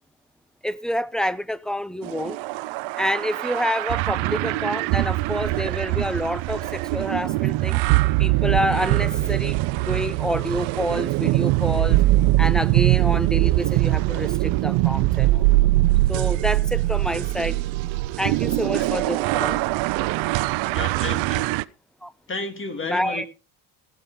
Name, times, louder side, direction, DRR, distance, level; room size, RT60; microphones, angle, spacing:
voice 1, 0.6-2.4 3.0-7.8 8.2-12.0 12.4-15.4 16.1-17.6 18.2-19.6 22.0-22.1 22.8-23.3, equal, ahead, 0.6 m, -27 dB
sound 1, 2.0-21.6, right 19 dB, 85° right, 0.7 m, -22 dB
voice 2, 20.7-21.5 22.3-23.3, left 3 dB, 25° left, 2.2 m, -32 dB
16.0 x 8.7 x 3.7 m
cardioid pair, 110°, 45 cm